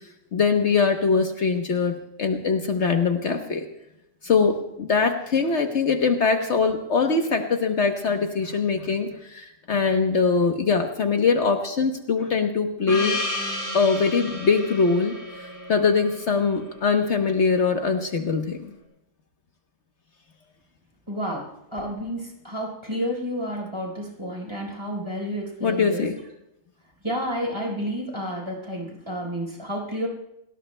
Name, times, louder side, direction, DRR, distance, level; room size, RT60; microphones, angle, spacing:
voice 1, 0.3-3.6 4.2-13.2 13.7-18.7 25.6-26.2, left 4 dB, 60° left, 4 dB, 1.3 m, -22 dB
Gong, 12.9-17.6, left 2 dB, 15° left, 4.3 m, -33 dB
voice 2, 21.1-26.1 27.0-30.1, equal, 20° right, -2 dB, 4.1 m, -30 dB
29.0 x 18.5 x 2.2 m, 0.85 s
omnidirectional pair, 1.4 m